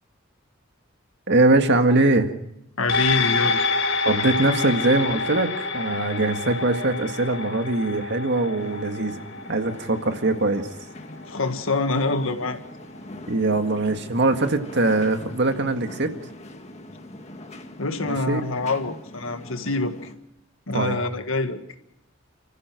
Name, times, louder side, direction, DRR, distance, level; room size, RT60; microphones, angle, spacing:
voice 1, 1.3-2.3 4.1-9.2 9.5-10.7 13.3-16.2 18.0-18.4 20.7-21.0, right 2 dB, 60° right, 6 dB, 1.9 m, -22 dB
voice 2, 2.8-3.7 11.3-12.6 17.8-19.9 20.7-21.6, left 3 dB, 85° left, 7 dB, 1.9 m, -25 dB
sound 1, 2.9-11.6 12.0-12.1, left 4 dB, 65° left, 4.3 m, -28 dB
sound 2, 8.6-20.1, left 1 dB, 35° left, 1.8 m, -42 dB
29.5 x 14.5 x 6.1 m, 0.80 s
head